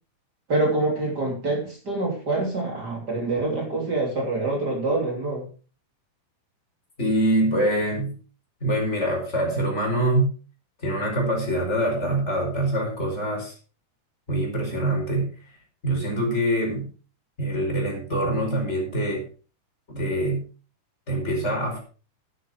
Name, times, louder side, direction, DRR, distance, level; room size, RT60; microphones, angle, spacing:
voice 1, 0.5-5.5, right 2 dB, 30° right, 0 dB, 3.2 m, -26 dB
voice 2, 7.0-8.2 8.6-10.3 10.8-13.6 14.3-15.3 15.8-16.9 17.4-19.2 19.9-20.4 21.1-21.8, right 1 dB, 20° left, 0 dB, 5.3 m, -24 dB
11.0 x 10.0 x 5.0 m, 0.37 s
omnidirectional pair, 3.7 m